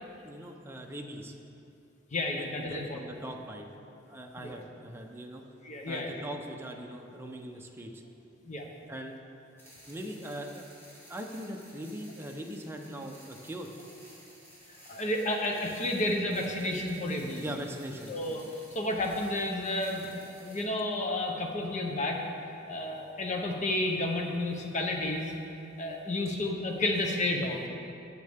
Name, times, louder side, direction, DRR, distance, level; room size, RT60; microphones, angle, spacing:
voice 1, 0.2-1.3 2.3-3.7 4.1-5.4 5.9-8.0 8.9-9.2 9.8-10.7 11.1-13.7 17.4-18.1, right 1 dB, 10° right, 2 dB, 0.7 m, -41 dB
voice 2, 2.1-3.0 4.4-4.6 5.6-6.3 8.5-8.7 14.9-17.4 18.1-18.4 18.7-22.2 22.7-25.4 25.8-27.7, left 1 dB, 40° left, 2 dB, 0.8 m, -31 dB
sound 1, 9.6-20.6, equal, 15° left, 2.2 m, -54 dB
16.0 x 6.5 x 3.5 m, 2.7 s
head